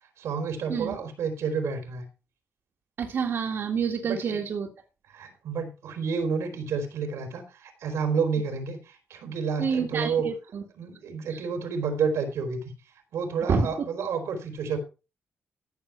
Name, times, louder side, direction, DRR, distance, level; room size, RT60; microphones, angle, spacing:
voice 1, 0.0-2.1 4.1-4.4 5.1-10.3 10.8-12.7 13.1-14.8, right 5 dB, 85° right, 6 dB, 3.7 m, -30 dB
voice 2, 3.0-4.7 9.6-10.6 11.3-11.5 13.5-13.7, right 6 dB, 55° right, 2 dB, 2.1 m, -28 dB
14.5 x 6.9 x 4.6 m, 0.31 s
cardioid pair, 120°, 5 cm